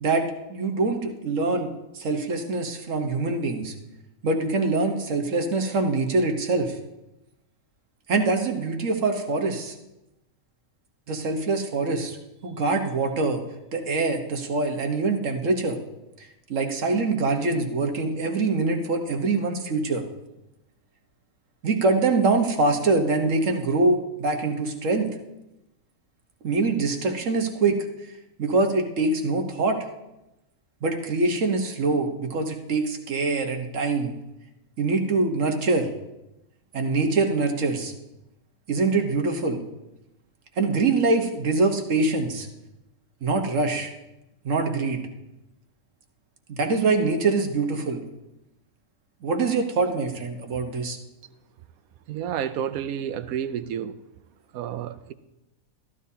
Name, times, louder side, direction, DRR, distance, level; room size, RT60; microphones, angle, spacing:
voice 1, 0.0-3.7 4.2-6.7 8.1-9.7 11.1-12.2 12.4-13.4 13.7-15.8 16.5-20.0 21.6-25.1 26.4-27.9 28.4-29.8 30.8-34.1 34.8-35.9 36.7-37.9 38.7-39.6 40.6-42.5 43.2-43.9 44.4-45.1 46.5-48.0 49.2-51.0, right 3 dB, 65° right, 4 dB, 1.5 m, -24 dB
voice 2, 52.1-54.0 54.5-55.1, right 9 dB, 85° right, 12 dB, 1.1 m, -30 dB
14.0 x 12.0 x 2.8 m, 0.94 s
omnidirectional pair, 1.5 m